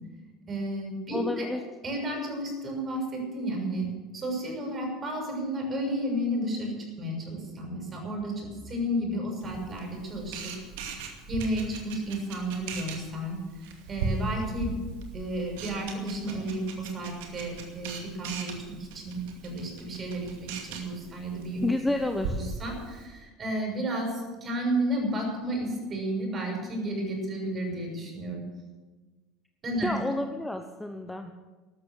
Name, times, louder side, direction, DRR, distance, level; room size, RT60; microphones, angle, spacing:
voice 1, 0.5-1.5 1.8-10.5 11.3-13.4 13.9-14.8 15.1-21.6 22.3-28.4 29.6-30.0, right 1 dB, 35° right, 1 dB, 6.7 m, -32 dB
voice 2, 1.1-1.6 21.6-22.4 29.8-31.3, left 1 dB, 5° left, 6 dB, 1.0 m, -30 dB
Camera, 9.4-23.0, right 4 dB, 65° right, 2.3 m, -39 dB
13.5 x 12.5 x 6.6 m, 1.3 s
figure-of-eight pair, 70°, 0 cm